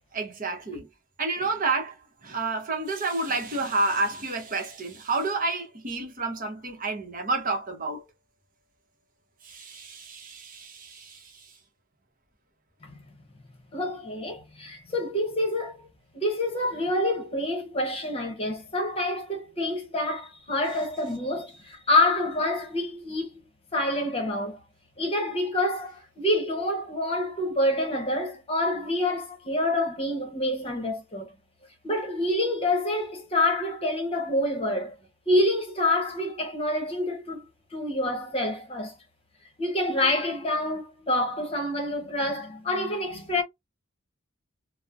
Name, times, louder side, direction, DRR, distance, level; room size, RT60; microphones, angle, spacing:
voice 1, 0.1-0.9 1.2-2.0 2.2-8.1 9.4-11.5, right 3 dB, 45° right, 0.9 m, -30 dB
voice 2, 13.7-15.9 16.1-23.3 23.7-24.6 25.0-31.3 31.8-34.9 35.3-37.4 37.7-38.9 39.6-43.4, left 1 dB, 30° left, 0.9 m, -27 dB
3.0 x 2.0 x 2.4 m
head